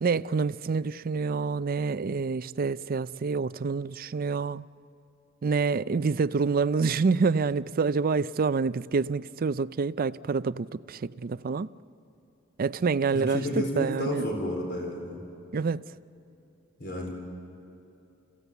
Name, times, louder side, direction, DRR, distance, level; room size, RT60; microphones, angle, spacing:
voice 1, 0.0-4.7 5.4-11.7 12.6-14.3 15.5-15.9, right 4 dB, 45° right, 0.4 m, -27 dB
voice 2, 13.1-15.2 16.8-17.1, left 1 dB, 55° left, 4.0 m, -31 dB
28.5 x 16.0 x 8.2 m
head